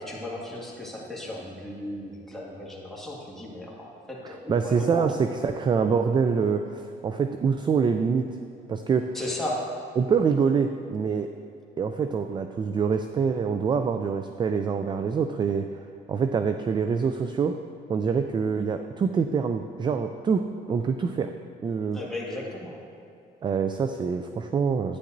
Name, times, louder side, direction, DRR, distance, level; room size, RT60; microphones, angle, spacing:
voice 1, 0.0-5.1 9.1-9.8 21.9-22.8, left 1 dB, ahead, -5 dB, 1.9 m, -35 dB
voice 2, 4.5-8.2 8.7-9.1 10.0-11.3 11.8-15.7 16.1-17.6 17.9-21.3 21.6-22.0 23.4-25.0, right 6 dB, 25° right, 7 dB, 0.3 m, -25 dB
11.5 x 9.7 x 2.6 m, 2.5 s
cardioid pair, 110°, 17 cm